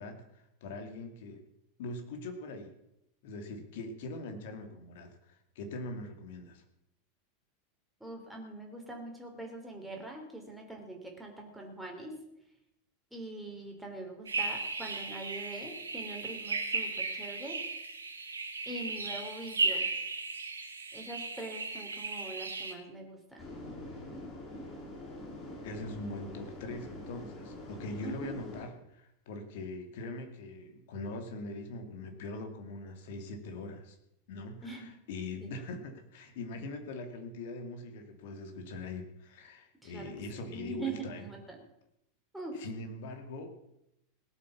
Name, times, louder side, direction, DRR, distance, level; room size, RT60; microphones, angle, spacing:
voice 1, 0.0-1.4 1.8-2.7 3.2-6.6 25.6-34.0 34.3-41.3 42.5-43.6, left 2 dB, 55° left, 6 dB, 2.5 m, -42 dB
voice 2, 8.0-12.1 13.1-17.6 18.7-19.9 20.9-23.5 28.0-28.4 34.6-34.9 35.4-35.5 39.8-40.1 40.5-41.6 42.3-42.6, right 2 dB, 5° right, 1 dB, 3.7 m, -43 dB
sound 1, 14.3-22.7, right 3 dB, 75° right, 1.6 m, -36 dB
sound 2, 23.4-28.7, left 1 dB, 25° left, 6.7 m, -45 dB
18.0 x 8.3 x 7.2 m, 0.82 s
figure-of-eight pair, 85°, 0 cm